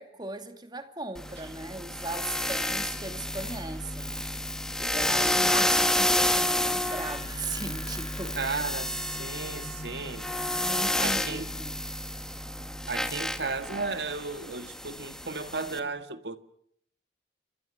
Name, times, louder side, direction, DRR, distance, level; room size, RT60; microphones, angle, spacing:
voice 1, 0.0-4.2 4.8-8.5 10.6-11.8, right 2 dB, 25° right, 2.4 m, -38 dB
sound 1, 1.2-15.8, left 1 dB, 5° left, 1.7 m, -30 dB
sound 2, 6.0-13.3, left 2 dB, 35° left, 6.9 m, -51 dB
voice 2, 8.4-10.2 11.0-11.5 12.9-16.4, right 4 dB, 70° right, 1.7 m, -34 dB
29.0 x 24.5 x 6.6 m
head